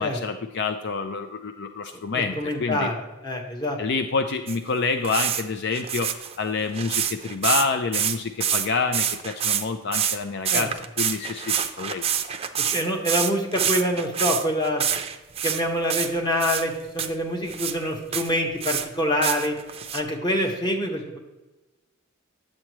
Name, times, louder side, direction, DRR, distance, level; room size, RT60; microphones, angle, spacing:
voice 1, 0.0-2.9 3.8-12.1 20.4-20.5, left 4 dB, 55° left, 7 dB, 0.5 m, -28 dB
voice 2, 2.1-3.0 3.2-3.8 10.5-10.7 12.7-14.8 15.4-19.5 19.9-21.2, equal, 20° left, 1 dB, 1.3 m, -25 dB
sound 1, 4.5-4.6 5.0-5.4 5.7-7.7 7.9-8.7 8.9-9.7 9.9-10.2 10.5-15.6 15.9-16.6 17.0-17.1 17.5-17.8 18.1-18.9 19.2-20.0, right 9 dB, 30° right, 0.5 m, -26 dB
9.8 x 7.5 x 3.1 m, 1.1 s
head